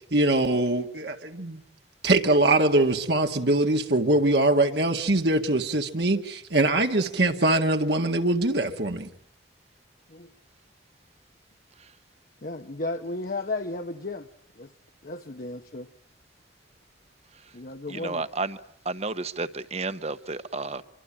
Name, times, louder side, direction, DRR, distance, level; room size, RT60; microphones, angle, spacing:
voice 1, 0.1-1.6 2.0-9.1, right 2 dB, 60° right, 4 dB, 1.9 m, -23 dB
voice 2, 12.4-14.3 14.6-14.7 15.0-15.9 17.5-18.2, left 2 dB, 50° left, 5 dB, 1.1 m, -34 dB
voice 3, 17.9-20.8, right 3 dB, 35° right, 12 dB, 1.2 m, -32 dB
26.0 x 24.5 x 8.7 m, 0.68 s
head